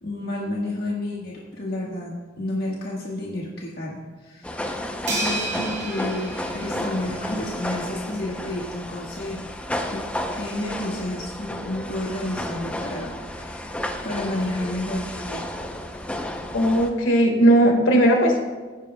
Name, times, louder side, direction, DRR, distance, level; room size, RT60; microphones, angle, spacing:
voice 1, 0.0-4.6 5.1-9.5 9.9-10.1 10.3-13.7 14.0-15.4, left 1 dB, 50° left, -4 dB, 1.5 m, -31 dB
sound 1, 4.4-16.9, left 1 dB, 5° left, 0.6 m, -32 dB
sound 2, 5.1-7.6, right 2 dB, 60° right, 2.3 m, -32 dB
voice 2, 16.5-18.5, right 1 dB, 90° left, 2 dB, 1.7 m, -17 dB
17.5 x 9.6 x 2.3 m, 1.4 s
head